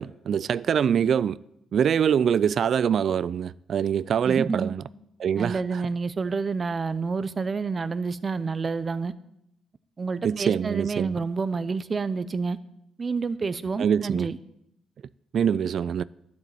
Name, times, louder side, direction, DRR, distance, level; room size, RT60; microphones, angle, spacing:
voice 1, 0.0-1.4 1.7-4.8 5.2-5.8 10.2-11.2 13.8-14.3 15.3-16.0, right 8 dB, 60° right, 0.3 m, -24 dB
voice 2, 4.3-4.7 5.4-9.1 10.0-12.6 13.0-14.4, right 4 dB, 35° right, 0.7 m, -28 dB
12.0 x 7.0 x 8.2 m
cardioid pair, 90°, 0 cm